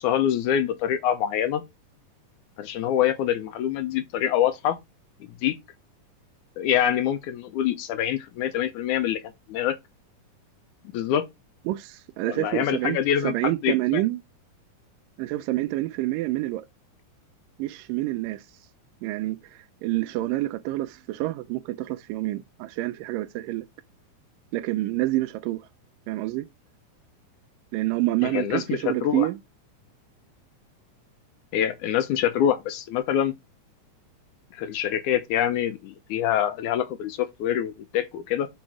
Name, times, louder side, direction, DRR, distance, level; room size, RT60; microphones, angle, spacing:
voice 1, 0.0-1.6 2.6-4.8 5.4-5.6 6.6-9.2 9.5-9.8 10.9-11.3 12.3-14.0 28.3-29.3 31.5-33.3 34.5-38.5, left 10 dB, 75° left, 2.0 m, -25 dB
voice 2, 11.7-13.0 13.2-14.2 15.2-16.7 17.6-18.4 19.0-23.7 24.5-25.6 26.1-26.5 27.7-29.4, right 17 dB, 85° right, 2.3 m, -27 dB
6.3 x 4.9 x 5.9 m
omnidirectional pair, 3.8 m